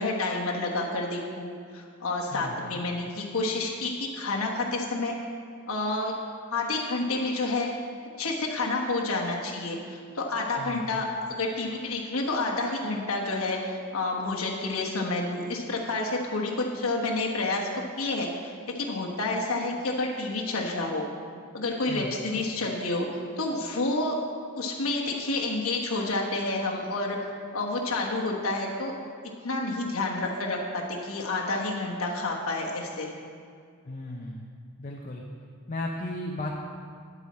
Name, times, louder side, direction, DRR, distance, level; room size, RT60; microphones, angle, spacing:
voice 1, 0.0-5.2 5.7-6.1 6.5-7.7 8.2-17.7 18.0-21.0 21.5-24.2 24.6-27.2 27.5-28.9 29.4-33.1, left 2 dB, 80° left, -1 dB, 1.3 m, -29 dB
voice 2, 10.6-10.9 21.9-22.1 33.9-34.5 34.8-35.2 35.7-36.5, left 1 dB, 35° left, -1 dB, 0.7 m, -35 dB
9.9 x 8.2 x 4.2 m, 2.2 s
head